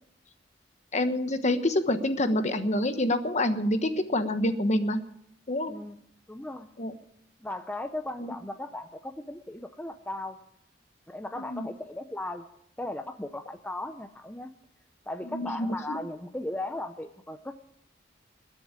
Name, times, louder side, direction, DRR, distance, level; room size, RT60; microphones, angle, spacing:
voice 1, 0.9-5.0 5.5-5.7 6.8-6.9 8.2-8.3 11.4-11.7 15.3-16.0, left 1 dB, 40° left, 9 dB, 1.2 m, -27 dB
voice 2, 5.7-6.7 7.4-10.4 11.1-12.4 12.8-14.5 15.1-17.5, left 1 dB, 10° left, 7 dB, 0.7 m, -37 dB
21.0 x 7.1 x 8.9 m, 0.73 s
head